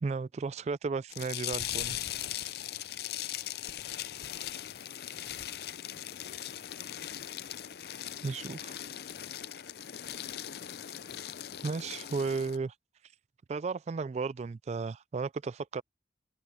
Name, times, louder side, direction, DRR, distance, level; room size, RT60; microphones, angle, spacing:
voice 1, 0.0-2.0 8.2-8.8 11.6-12.7 13.5-15.8, right 4 dB, 40° right, 0.3 m, -34 dB
sound 1, 1.1-12.6, left 11 dB, 60° left, 0.5 m, -39 dB
voice 2, 3.1-4.4 4.7-5.8, left 2 dB, 80° left, 3.4 m, -67 dB
head